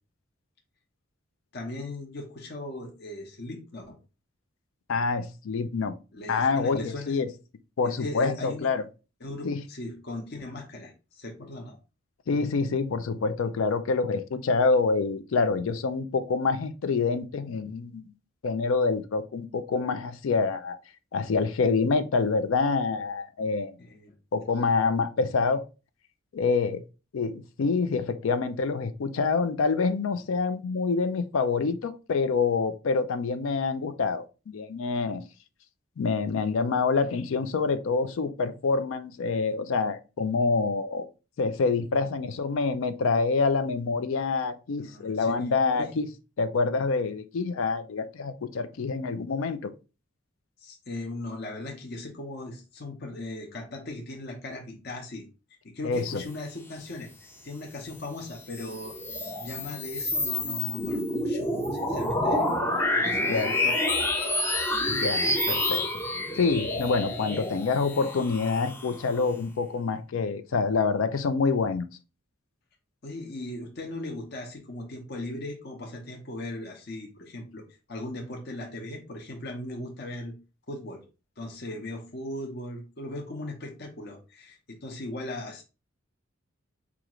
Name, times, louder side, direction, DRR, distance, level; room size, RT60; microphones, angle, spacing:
voice 1, 1.5-4.0 6.1-7.2 7.8-8.7 9.2-11.8 12.3-12.5 23.8-24.1 42.0-42.1 44.8-45.4 45.7-45.9 50.6-55.2 55.6-59.0 59.4-62.4 63.0-63.8 67.3-67.5 73.0-80.3 80.7-81.0 81.4-85.6, left 1 dB, 50° left, 0.8 m, -38 dB
voice 2, 4.9-5.9 6.3-7.3 7.8-8.8 9.4-9.6 12.3-18.0 18.4-20.8 21.1-23.7 24.3-25.6 26.3-26.8 27.1-35.2 36.0-41.1 41.4-46.1 46.4-49.7 55.8-56.2 63.3-63.5 64.9-65.9 66.4-71.9, left 4 dB, 70° left, 0.4 m, -26 dB
sound 1, 58.3-69.3, left 1 dB, 10° left, 0.5 m, -28 dB
4.9 x 2.4 x 3.0 m
head